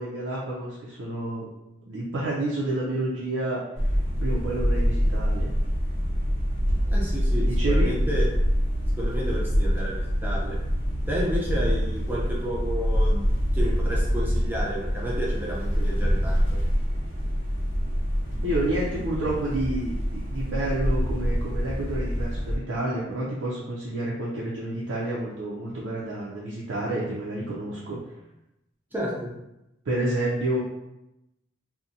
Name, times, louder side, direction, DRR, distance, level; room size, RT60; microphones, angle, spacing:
voice 1, 0.0-1.5 1.9-3.6 4.2-5.5 7.4-8.0 18.4-28.0 29.8-30.6, right 1 dB, 90° right, -6 dB, 0.5 m, -29 dB
sound 1, 3.8-22.6, equal, 65° left, 0.7 m, -25 dB
voice 2, 6.8-8.2 9.0-10.6 11.1-13.2 13.5-16.6 28.9-29.3, equal, 10° right, -5 dB, 0.5 m, -31 dB
2.6 x 2.1 x 2.6 m, 0.89 s
head